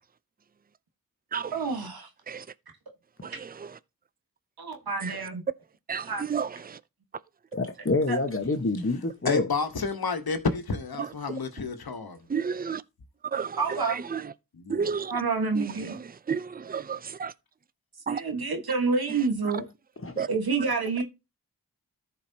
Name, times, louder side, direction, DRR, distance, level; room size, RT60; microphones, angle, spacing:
voice 1, 1.5-2.1 3.3-3.4 4.6-5.4 6.1-6.3 8.1-8.2 13.6-14.0 15.1-16.0 18.1-19.6 20.3-21.0, right 4 dB, 85° right, 1.5 m, -28 dB
voice 2, 3.2-3.8 5.0-5.2 5.9-6.8 11.0-11.1 12.3-12.8 13.2-14.3 14.7-15.1 15.6-17.3 18.1-18.2 20.2-20.3, right 6 dB, 25° right, 0.5 m, -32 dB
voice 3, 7.5-9.5 20.0-20.3, left 3 dB, 35° left, 1.2 m, -27 dB
voice 4, 9.2-12.2 14.5-14.9, left 4 dB, 85° left, 1.2 m, -30 dB
14.0 x 4.8 x 2.8 m
cardioid pair, 40°, 36 cm